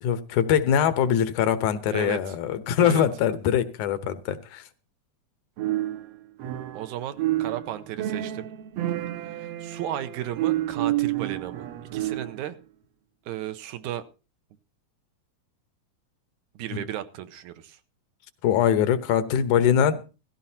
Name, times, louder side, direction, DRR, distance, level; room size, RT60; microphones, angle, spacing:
voice 1, 0.0-4.6 18.4-20.0, left 9 dB, 85° left, 2.4 m, -22 dB
voice 2, 1.9-2.4 2.8-3.1 6.7-8.5 9.2-11.7 11.9-12.6 13.3-14.0 16.6-17.8, right 11 dB, 85° right, 2.3 m, -34 dB
sound 1, 5.6-6.9 7.2-12.5, right 14 dB, 70° right, 1.7 m, -29 dB
17.5 x 15.0 x 2.8 m
omnidirectional pair, 3.4 m